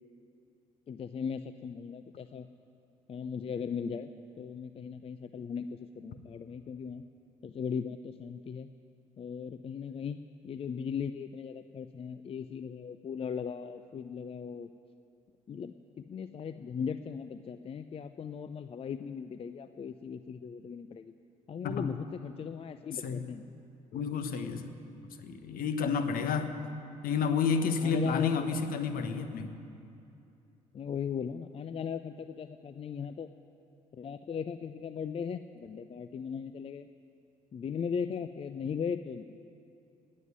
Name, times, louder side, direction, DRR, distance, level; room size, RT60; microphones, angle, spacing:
voice 1, 0.9-2.5 3.1-4.1 4.4-7.0 7.4-8.7 9.2-10.2 10.4-14.7 15.5-21.1 21.5-23.4 27.8-28.6 30.7-33.3 33.9-36.9 37.5-39.5, left 6 dB, 30° left, 11 dB, 0.5 m, -38 dB
voice 2, 22.9-23.3 23.9-24.8 25.1-26.5 27.0-29.6, left 5 dB, 55° left, 9 dB, 1.2 m, -30 dB
19.0 x 7.6 x 9.6 m, 2.7 s
figure-of-eight pair, 45°, 18 cm